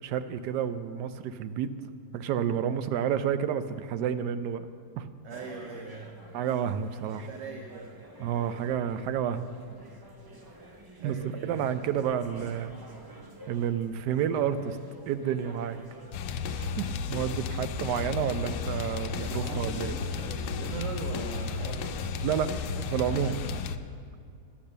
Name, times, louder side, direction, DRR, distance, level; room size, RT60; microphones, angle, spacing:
voice 1, 0.0-1.7 2.1-4.7 5.0-5.1 6.3-7.3 8.2-9.5 11.0-11.2 11.4-12.7 13.5-14.8 15.1-15.8 16.6-19.9 22.2-22.5 22.8-23.4, right 9 dB, 80° right, 11 dB, 1.2 m, -30 dB
voice 2, 5.2-6.1 7.0-7.9 10.9-11.5 19.2-22.0, right 4 dB, 55° right, 2 dB, 1.1 m, -40 dB
sound 1, 5.3-23.6, right 1 dB, 35° right, 0.3 m, -48 dB
sound 2, 16.1-23.8, left 5 dB, 85° left, 1.2 m, -33 dB
12.0 x 8.5 x 6.6 m, 2.1 s
omnidirectional pair, 1.8 m